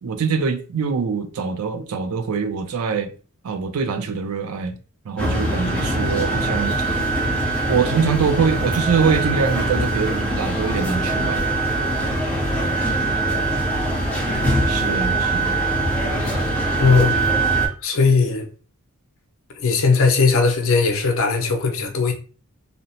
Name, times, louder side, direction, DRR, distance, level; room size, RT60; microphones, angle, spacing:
voice 1, 0.0-3.1 3.4-4.7 5.1-6.7 7.7-11.4 14.7-15.5, right 6 dB, 75° right, 0.4 m, -23 dB
sound 1, 5.2-17.7, right 2 dB, 5° left, 0.7 m, -22 dB
voice 2, 16.8-17.2 17.8-18.5 19.6-22.1, left 4 dB, 60° left, 0.6 m, -18 dB
2.7 x 2.0 x 2.8 m
head